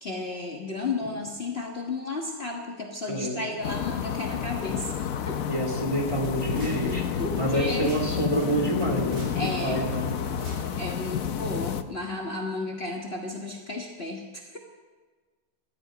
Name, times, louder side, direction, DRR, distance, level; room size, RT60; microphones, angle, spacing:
voice 1, 0.0-4.9 5.3-5.4 6.6-7.9 9.4-9.8 10.8-14.6, left 2 dB, 35° left, 0 dB, 1.6 m, -33 dB
voice 2, 3.1-3.4 5.5-9.3 9.6-10.2, right 1 dB, 15° right, 1 dB, 2.8 m, -28 dB
sound 1, 3.6-11.8, left 8 dB, 60° left, 1.1 m, -30 dB
sound 2, 5.9-10.9, right 1 dB, 55° right, 4.9 m, -42 dB
18.5 x 14.0 x 5.1 m, 1.3 s
omnidirectional pair, 1.9 m